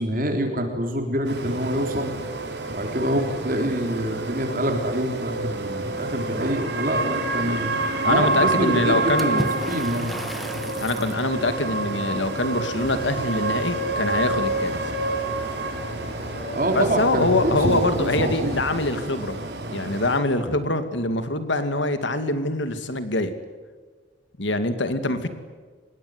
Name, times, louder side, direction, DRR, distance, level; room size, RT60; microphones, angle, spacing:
voice 1, 0.0-2.1 2.7-7.7 8.0-10.2 16.5-18.6, right 1 dB, 45° right, 3 dB, 3.9 m, -26 dB
sound 1, 1.2-20.2, right 2 dB, 65° right, 4.4 m, -28 dB
voice 2, 8.0-9.5 10.8-14.8 16.7-19.4 19.7-23.3 24.4-25.3, left 2 dB, 80° left, 10 dB, 2.4 m, -24 dB
Water / Splash splatter, 9.2-11.3, equal, ahead, 1.4 m, -34 dB
sound 2, 12.7-19.0, left 1 dB, 30° left, 5.1 m, -40 dB
26.0 x 21.5 x 9.6 m, 1.4 s
head